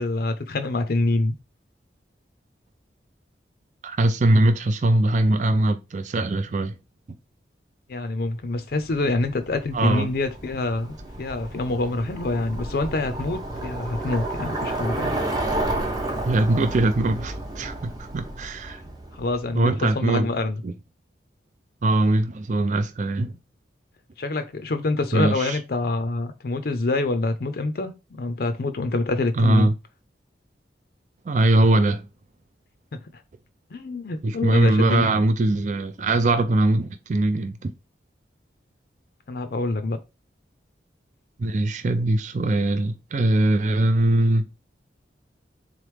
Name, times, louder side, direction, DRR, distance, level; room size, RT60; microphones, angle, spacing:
voice 1, 0.0-1.3 7.9-15.1 18.8-19.7 19.9-20.6 24.2-29.7 33.7-35.1 39.3-40.0, left 2 dB, 60° left, 0.5 m, -26 dB
voice 2, 3.8-6.8 9.7-10.1 16.2-18.8 19.5-20.3 20.6-20.7 21.8-23.3 25.1-25.6 29.4-29.7 31.3-32.0 34.2-37.7 41.4-44.5, right 2 dB, 45° right, 0.4 m, -21 dB
Bicycle, 8.8-19.7, right 1 dB, 25° right, 0.8 m, -31 dB
3.9 x 3.1 x 3.3 m
head